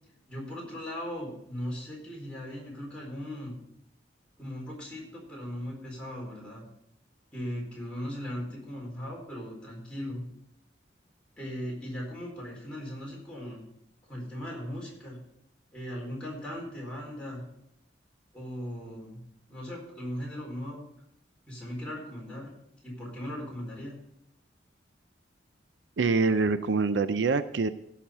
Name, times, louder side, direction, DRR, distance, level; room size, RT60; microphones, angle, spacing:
voice 1, 0.3-3.5 4.4-6.6 7.3-10.2 11.4-13.7 14.1-15.2 15.7-17.4 18.3-19.2 19.5-20.9 21.5-22.5 22.8-23.9, equal, 5° left, -4 dB, 4.3 m, -38 dB
voice 2, 26.0-27.7, right 4 dB, 70° right, 12 dB, 0.5 m, -25 dB
16.5 x 5.8 x 5.5 m, 0.76 s
head